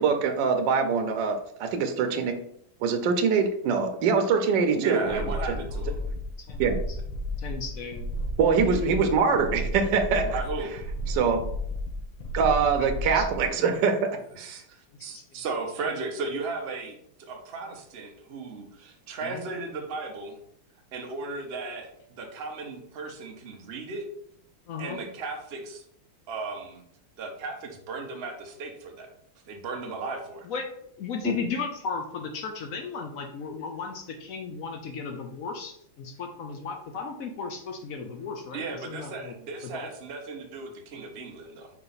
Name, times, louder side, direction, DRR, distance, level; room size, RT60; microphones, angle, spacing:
voice 1, 0.0-2.4 2.8-5.2 5.5-5.6 6.6-6.8 8.4-10.4 11.1-11.4 12.3-14.5, right 5 dB, 70° right, 5 dB, 1.2 m, -24 dB
voice 2, 4.7-6.0 10.2-10.8 14.3-20.4 20.9-24.0 24.8-25.8 26.3-26.8 27.2-29.1 29.5-30.5 38.5-41.7, right 3 dB, 90° right, 2 dB, 0.5 m, -35 dB
sound 1, 5.0-13.5, equal, 65° left, 1.7 m, -33 dB
voice 3, 6.5-7.0 7.4-8.1 12.8-12.9 13.1-13.5 15.1-15.2 19.2-19.4 24.7-25.0 30.4-30.7 31.0-39.3 39.7-39.9, left 5 dB, 85° left, 3 dB, 0.7 m, -35 dB
4.9 x 4.8 x 4.0 m, 0.70 s
omnidirectional pair, 2.3 m